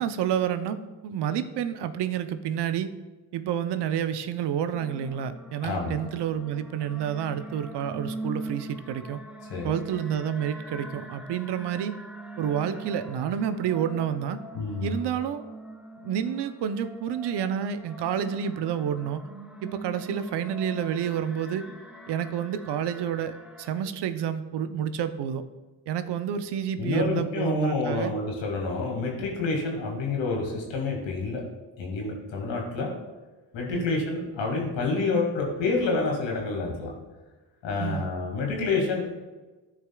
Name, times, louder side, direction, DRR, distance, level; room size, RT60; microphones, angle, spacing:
voice 1, 0.0-2.9 3.3-9.2 9.6-11.9 12.4-14.4 14.8-15.4 16.0-19.3 19.6-21.6 22.1-25.4 25.9-28.1 33.7-34.0 37.8-38.1, right 9 dB, 60° right, 11 dB, 0.7 m, -29 dB
sound 1, 4.7-23.8, right 2 dB, ahead, 1.0 m, -42 dB
voice 2, 5.6-6.0 9.5-9.7 14.5-14.9 26.8-31.4 31.8-32.9 33.5-37.0 37.6-39.0, left 3 dB, 70° left, -1 dB, 2.1 m, -28 dB
13.0 x 5.0 x 2.3 m, 1.2 s
supercardioid pair, 55°, 46 cm